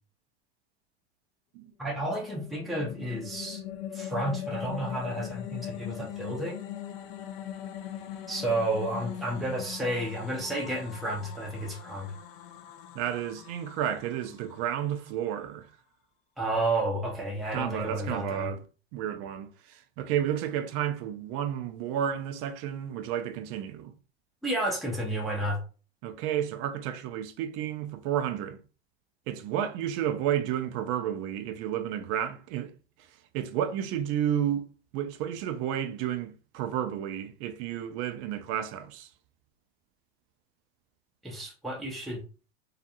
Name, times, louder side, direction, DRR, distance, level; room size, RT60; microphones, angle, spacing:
voice 1, 1.8-3.6 3.9-6.6 8.3-12.1 16.4-18.5 24.4-25.6 41.2-42.2, right 1 dB, ahead, 0.6 m, -31 dB
sound 1, 1.9-15.2, left 11 dB, 55° left, 0.6 m, -41 dB
voice 2, 12.9-15.7 17.5-18.6 18.9-23.9 26.0-28.6 29.3-32.7 33.3-34.7 34.9-39.1, right 10 dB, 45° right, 0.5 m, -31 dB
2.4 x 2.4 x 2.7 m
hypercardioid pair, 100°, 32 cm